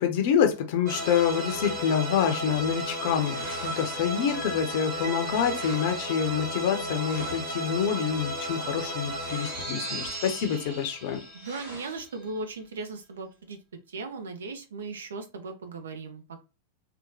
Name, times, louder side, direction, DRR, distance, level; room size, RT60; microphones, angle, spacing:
voice 1, 0.0-11.2, left 8 dB, 50° left, 0.5 m, -27 dB
sound 1, 0.9-12.3, equal, 35° right, 1.1 m, -34 dB
sound 2, 3.1-4.3 5.2-6.1 6.9-7.8 9.2-10.5 10.8-10.9 11.4-12.1, right 1 dB, 85° right, 1.3 m, -45 dB
voice 2, 11.3-13.6 13.9-16.4, right 3 dB, 65° right, 0.5 m, -37 dB
2.9 x 2.1 x 2.7 m
figure-of-eight pair, 90°, 0 cm